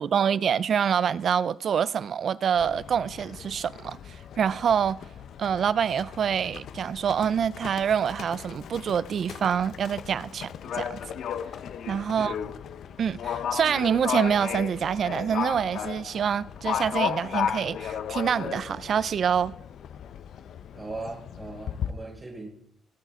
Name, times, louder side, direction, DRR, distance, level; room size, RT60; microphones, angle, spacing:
voice 1, 0.0-4.0 4.4-5.0 5.4-11.0 11.9-12.4 13.0-19.5, right 7 dB, 55° right, 0.5 m, -26 dB
Livestock farm animals working animals, 2.6-21.9, left 9 dB, 70° left, 0.8 m, -35 dB
voice 2, 12.1-12.5 20.7-22.5, right 3 dB, 30° right, 4.6 m, -39 dB
24.0 x 9.2 x 3.7 m
cardioid pair, 90°, 0 cm